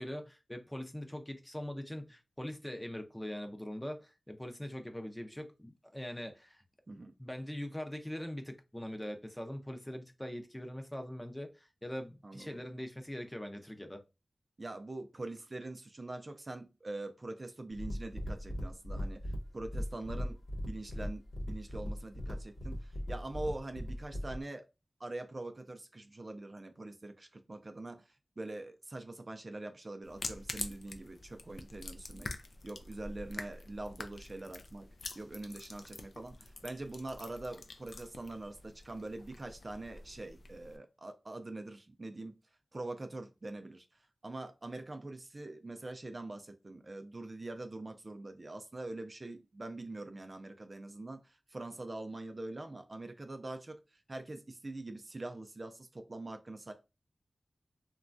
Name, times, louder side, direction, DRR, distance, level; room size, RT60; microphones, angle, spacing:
voice 1, 0.0-6.6 7.2-14.0, equal, 10° left, 0.5 m, -42 dB
voice 2, 12.2-12.6 14.6-20.4 20.6-21.2 21.5-24.6 25.0-32.3 32.6-34.9 35.2-42.3 42.7-43.9 44.2-56.7, right 2 dB, 45° right, 0.4 m, -44 dB
sound 1, 17.7-24.4, equal, 55° left, 0.9 m, -39 dB
sound 2, 30.0-40.8, left 3 dB, 85° left, 0.3 m, -46 dB
3.1 x 2.2 x 2.5 m
wide cardioid pair, 55°, 0 cm